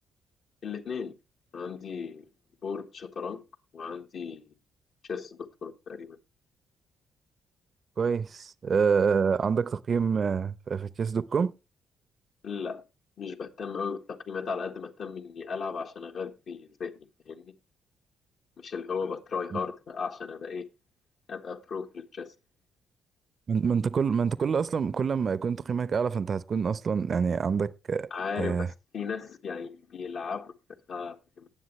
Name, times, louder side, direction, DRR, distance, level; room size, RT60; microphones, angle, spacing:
voice 1, 0.6-1.1 1.5-2.2 2.6-3.4 3.7-4.5 5.1-6.2 12.4-12.8 13.2-17.5 18.6-20.7 21.3-22.3 28.1-28.6 28.9-30.5 30.9-31.5, left 5 dB, 60° left, 1.5 m, -36 dB
voice 2, 8.0-11.5 19.5-19.6 23.5-28.1 28.4-28.7, right 6 dB, 45° right, 0.7 m, -27 dB
20.0 x 7.2 x 3.2 m
cardioid pair, 90°, 0 cm